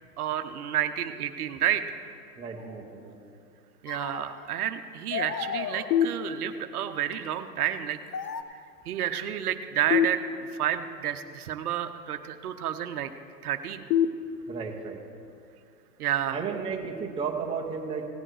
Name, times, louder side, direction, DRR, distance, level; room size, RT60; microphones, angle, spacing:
voice 1, 0.2-1.8 3.8-8.0 8.9-10.2 10.5-13.1 13.4-13.9 16.0-16.4, right 10 dB, 65° right, 8 dB, 0.8 m, -30 dB
voice 2, 2.4-3.2 14.5-15.0 16.3-18.1, right 5 dB, 10° right, 0 dB, 0.8 m, -33 dB
sound 1, 2.6-2.8 3.9-4.7 5.1-6.4 7.1-7.3 8.1-8.4, left 7 dB, 90° left, 0.8 m, -35 dB
sound 2, 5.9-6.9 9.9-10.9 13.9-14.9, left 9 dB, 50° left, 0.8 m, -27 dB
17.0 x 7.6 x 4.7 m, 2.4 s
hypercardioid pair, 120°, 48 cm